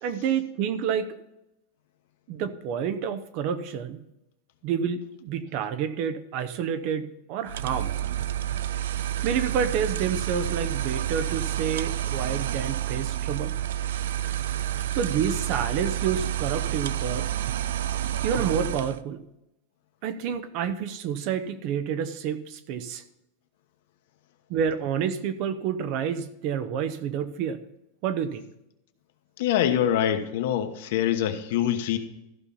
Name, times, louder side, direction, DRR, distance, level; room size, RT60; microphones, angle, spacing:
voice 1, 0.0-1.1 2.3-4.0 4.6-8.0 9.2-13.5 14.9-17.3 18.2-19.2 20.0-23.0 24.5-27.6 28.0-28.4, right 7 dB, 40° right, 12 dB, 0.7 m, -29 dB
sound 1, 7.5-19.0, right 11 dB, 90° right, 0.4 m, -29 dB
voice 2, 29.4-32.0, left 10 dB, 60° left, 7 dB, 1.1 m, -24 dB
14.0 x 5.7 x 5.5 m, 0.85 s
supercardioid pair, 170°, 0 cm